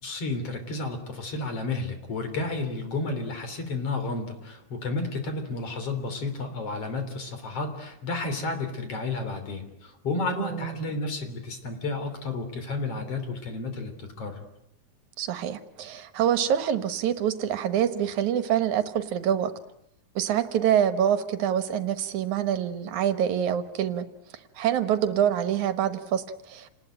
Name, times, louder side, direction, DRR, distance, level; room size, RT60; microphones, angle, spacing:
voice 1, 0.0-14.5, left 3 dB, 50° left, 7 dB, 4.3 m, -32 dB
voice 2, 10.4-10.9 15.2-19.5 20.2-24.1 24.6-26.7, right 9 dB, 70° right, 11 dB, 2.5 m, -26 dB
28.5 x 19.5 x 9.2 m, 0.85 s
omnidirectional pair, 3.6 m